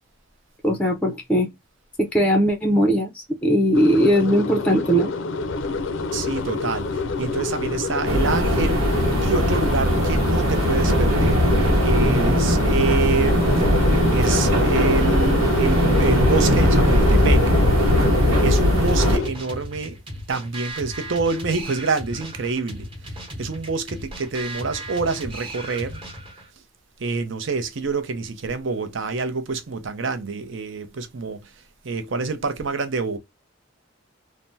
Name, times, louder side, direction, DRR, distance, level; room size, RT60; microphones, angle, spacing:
voice 1, 0.6-1.5 2.0-5.1, equal, 5° left, 0.5 m, -19 dB
sound 1, 3.7-19.3, left 3 dB, 65° left, 0.4 m, -27 dB
voice 2, 6.1-11.5 11.8-13.4 14.1-17.5 18.4-20.0 20.3-22.9 23.4-26.0 27.0-31.4 31.8-33.2, right 4 dB, 65° right, 0.6 m, -27 dB
sound 2, 8.0-19.2, equal, 90° right, 0.9 m, -19 dB
sound 3, 18.9-26.5, right 1 dB, 25° right, 1.0 m, -36 dB
3.3 x 2.1 x 2.6 m
head